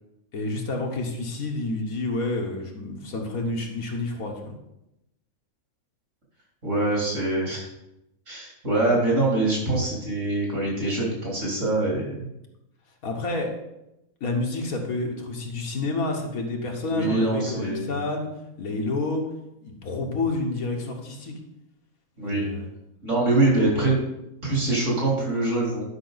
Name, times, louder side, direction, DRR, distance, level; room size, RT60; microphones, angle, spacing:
voice 1, 0.3-4.6 13.0-13.6 14.2-18.3 18.6-19.3 19.6-21.3 22.2-22.7, left 2 dB, 75° left, 1 dB, 1.7 m, -29 dB
voice 2, 6.6-7.7 8.3-12.3 16.8-17.9 22.2-22.5 23.0-23.9 24.4-25.8, right 2 dB, 55° right, -4 dB, 3.8 m, -24 dB
10.5 x 5.7 x 4.0 m, 0.87 s
omnidirectional pair, 1.5 m